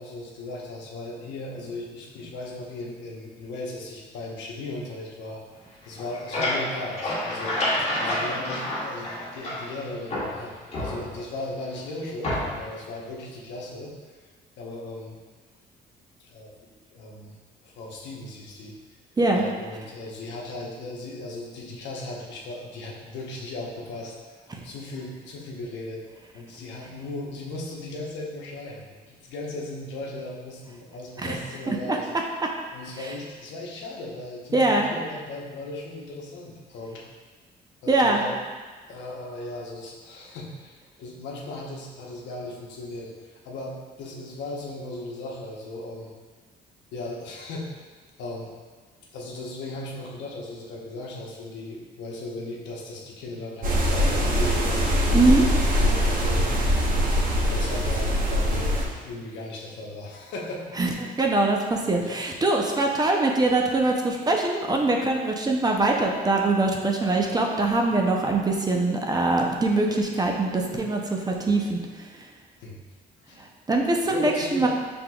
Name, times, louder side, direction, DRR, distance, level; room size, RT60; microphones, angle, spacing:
voice 1, 0.0-5.4 5.8-7.6 8.0-13.9 14.6-15.2 16.2-17.4 17.6-18.7 19.3-24.1 24.6-26.0 26.3-32.1 32.7-37.0 37.8-38.3 38.9-46.1 46.9-47.9 48.2-48.5 49.1-54.9 55.6-56.6 57.5-60.7 62.0-62.1 72.6-72.8 73.3-73.4 74.1-74.7, left 2 dB, 85° left, -2 dB, 0.9 m, -37 dB
sound 1, 5.8-9.8 10.1-11.4 12.2-12.8, left 1 dB, 35° left, 1.3 m, -29 dB
voice 2, 31.7-32.0 33.0-33.1 34.5-34.9 37.9-38.2 55.1-55.5 60.8-60.9 61.2-72.3 73.4-74.7, right 2 dB, 20° right, 1 dB, 0.6 m, -23 dB
sound 2, 53.6-58.9, equal, 50° right, 1.0 m, -22 dB
5.8 x 3.5 x 2.3 m, 1.4 s
cardioid pair, 105°, 18 cm